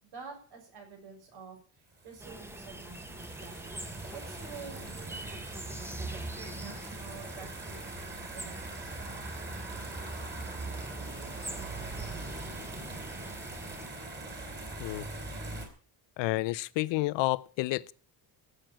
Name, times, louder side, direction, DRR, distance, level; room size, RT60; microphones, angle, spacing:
voice 1, 0.0-3.7 4.1-5.6 6.1-9.3, right 5 dB, 70° right, 7.1 m, -49 dB
sound 1, 2.0-15.7, right 2 dB, 25° right, 3.8 m, -41 dB
sound 2, 2.2-13.9, right 1 dB, 5° right, 0.9 m, -46 dB
voice 2, 16.2-17.9, left 19 dB, 80° left, 0.7 m, -30 dB
14.0 x 7.8 x 8.9 m
cardioid pair, 150°, 43 cm